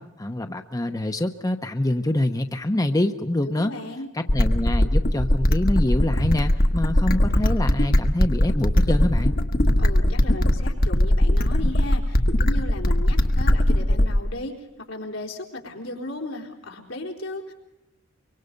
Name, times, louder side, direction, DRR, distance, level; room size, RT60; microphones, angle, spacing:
voice 1, 0.0-3.7 4.1-9.3, left 1 dB, 20° left, 7 dB, 0.8 m, -25 dB
voice 2, 3.6-4.1 9.8-17.5, left 1 dB, 90° left, 0 dB, 4.0 m, -35 dB
sound 1, 4.3-14.3, left 1 dB, 50° left, 1.2 m, -20 dB
24.5 x 24.0 x 5.3 m, 0.93 s
head